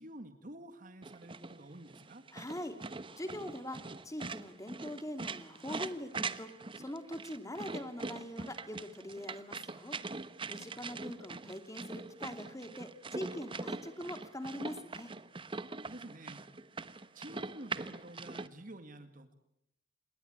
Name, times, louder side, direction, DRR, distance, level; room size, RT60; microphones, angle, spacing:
voice 1, 0.0-2.2 10.7-10.9 15.8-16.5 17.1-19.3, right 1 dB, 50° right, 9 dB, 1.9 m, -50 dB
sound 1, 1.0-18.5, right 3 dB, 30° right, 0.9 m, -43 dB
voice 2, 2.3-10.0 10.5-15.1, left 1 dB, 20° left, 8 dB, 2.7 m, -43 dB
28.0 x 21.0 x 8.9 m, 0.79 s
head